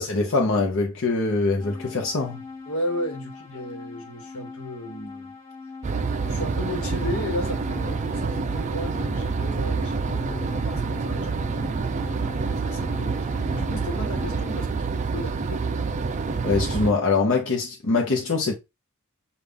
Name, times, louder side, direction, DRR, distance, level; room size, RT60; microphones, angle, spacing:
voice 1, 0.0-2.4 16.4-18.5, left 3 dB, 55° left, 0.8 m, -23 dB
sound 1, 1.6-14.5, left 4 dB, 20° left, 0.9 m, -42 dB
voice 2, 2.7-5.4 6.2-12.0 12.6-15.7, left 1 dB, 80° left, 1.2 m, -34 dB
sound 2, 5.8-16.9, right 4 dB, 35° right, 0.4 m, -27 dB
5.4 x 2.4 x 3.4 m
head